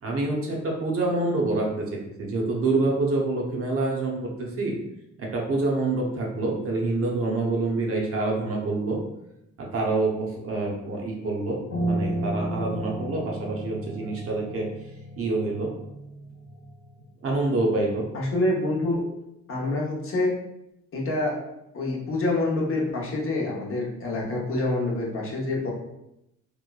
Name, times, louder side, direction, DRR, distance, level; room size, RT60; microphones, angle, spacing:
voice 1, 0.0-4.8 5.2-9.0 9.6-14.7 15.2-15.7 17.2-18.1, right 2 dB, 50° right, -1 dB, 0.7 m, -26 dB
Piano, 11.7-17.0, right 1 dB, 85° left, 1.1 m, -33 dB
voice 2, 18.1-19.0 19.5-20.3 20.9-21.4 21.7-25.7, left 2 dB, 45° left, -3 dB, 0.8 m, -26 dB
3.0 x 2.1 x 2.2 m, 0.84 s
cardioid pair, 90°, 30 cm